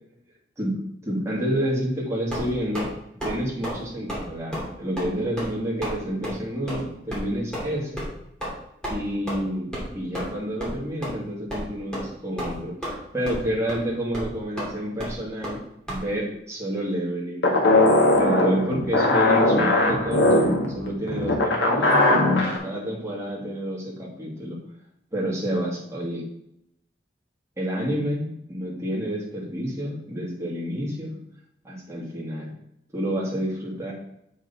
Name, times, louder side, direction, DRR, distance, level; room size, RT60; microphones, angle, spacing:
voice 1, 1.0-2.9 3.2-8.1 8.9-15.6 15.9-17.4 18.2-22.1 22.6-24.6 25.1-26.3 27.6-31.1 31.6-32.5 32.9-33.9, equal, 15° right, -4 dB, 2.4 m, -29 dB
sound 1, 2.3-2.9 3.2-3.4 3.6-3.8 4.1-4.3 4.5-4.7 5.0-5.1 5.4-5.5 5.8-6.0 6.2-6.3 6.7-6.8 7.1-7.2 7.5-7.7 8.0-8.1 8.4-8.5 8.8-9.0 9.3-9.4 9.7-9.9 10.1-10.3 10.6-10.7 11.0-11.1 11.5-11.6 11.9-12.1 12.4-13.0 13.3-13.4 13.7-13.8 14.1-14.3 14.6-14.7 15.0-15.1 15.4-15.6 15.9-16.0, equal, 5° left, 2.6 m, -31 dB
sound 2, 17.4-22.6, left 2 dB, 70° left, 1.8 m, -19 dB
7.9 x 5.5 x 4.2 m, 0.78 s
head